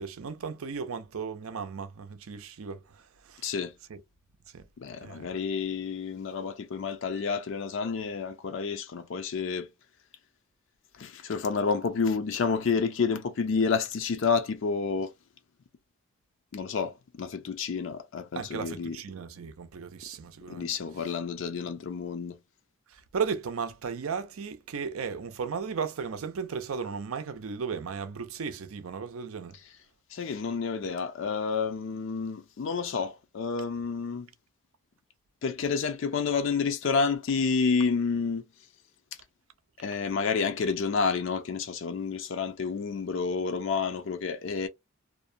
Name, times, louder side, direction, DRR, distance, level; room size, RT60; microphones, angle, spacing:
voice 1, 0.0-3.4 3.9-4.0 4.5-4.6 5.0-5.3 18.3-20.7 21.0-21.1 22.9-29.6, right 6 dB, 80° right, 0.5 m, -35 dB
voice 2, 3.4-3.7 4.8-9.7 11.0-15.1 16.5-19.0 20.5-22.4 30.1-34.3 35.4-38.4 39.8-44.7, left 5 dB, 60° left, 0.4 m, -29 dB
2.5 x 2.1 x 2.5 m
head